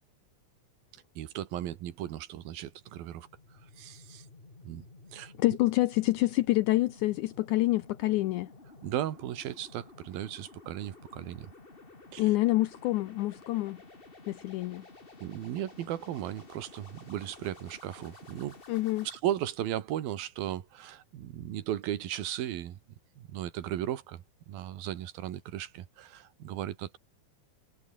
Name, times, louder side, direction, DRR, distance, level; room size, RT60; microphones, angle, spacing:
voice 1, 1.2-3.3 3.8-4.3 4.6-4.8 5.1-5.3 8.8-11.5 12.1-12.3 15.2-18.6 19.0-22.8 23.2-27.0, right 12 dB, 85° right, 3.4 m, -36 dB
sound 1, 2.7-19.2, left 3 dB, 20° left, 2.1 m, -53 dB
voice 2, 5.4-8.5 12.2-13.8 14.3-14.8 18.7-19.1, left 17 dB, 80° left, 1.8 m, -27 dB
omnidirectional pair, 4.1 m